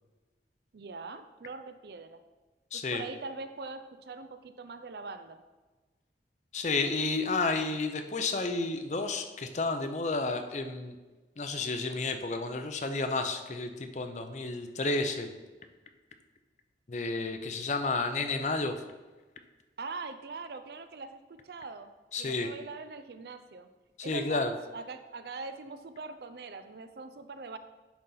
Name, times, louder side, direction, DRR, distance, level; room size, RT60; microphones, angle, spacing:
voice 1, 0.7-2.2 2.9-5.4 19.8-21.9 22.2-23.7 24.0-27.6, right 4 dB, 65° right, 10 dB, 0.4 m, -42 dB
voice 2, 2.7-3.0 6.5-11.0 11.4-15.3 16.9-18.7 22.1-22.5 24.0-24.5, left 3 dB, 40° left, 7 dB, 0.5 m, -31 dB
10.0 x 4.1 x 3.9 m, 1.3 s
head